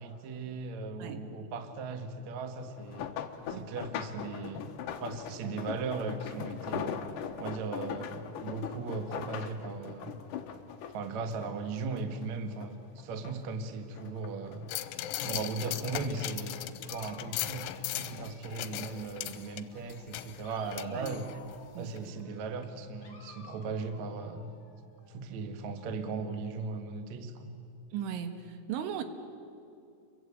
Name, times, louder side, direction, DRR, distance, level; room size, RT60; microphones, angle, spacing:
voice 1, 0.0-3.1 3.5-4.7 5.0-7.0 7.4-10.2 10.9-14.7 15.2-16.6 16.9-21.3 21.8-24.5 25.1-27.5, right 4 dB, 55° right, 7 dB, 2.1 m, -37 dB
sound 1, 2.7-12.3 12.6-13.6 14.0-15.3 16.0-16.3 16.8-16.9, left 8 dB, 65° left, 2.2 m, -40 dB
sound 2, 14.7-21.6 22.0-22.1, left 13 dB, 80° left, 3.3 m, -38 dB
Dog, 16.7-19.1 19.4-25.4, left 4 dB, 35° left, 2.4 m, -57 dB
voice 2, 27.9-29.0, right 8 dB, 80° right, 8 dB, 3.9 m, -37 dB
29.0 x 23.5 x 8.7 m, 2.6 s
omnidirectional pair, 5.5 m